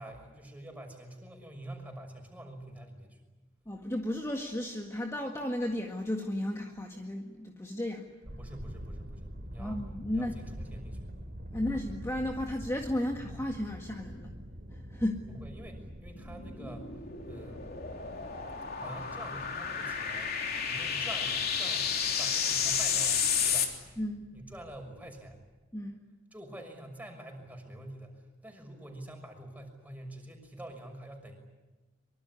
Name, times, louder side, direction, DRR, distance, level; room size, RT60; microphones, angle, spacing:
voice 1, 0.0-3.2 8.3-11.1 11.5-11.6 15.3-17.0 17.3-17.7 18.7-20.4 20.7-23.7 24.3-25.4 26.3-31.4, right 1 dB, 10° right, 3 dB, 6.3 m, -46 dB
voice 2, 3.7-8.1 9.6-10.3 11.5-14.3 14.7-15.2 24.0-24.2 25.7-26.0, left 1 dB, 15° left, 2 dB, 1.8 m, -34 dB
sound 1, 8.2-25.4, equal, 55° right, 3.6 m, -46 dB
sound 2, 16.1-23.7, left 7 dB, 50° left, 3.4 m, -31 dB
25.0 x 24.0 x 9.9 m, 1.1 s
head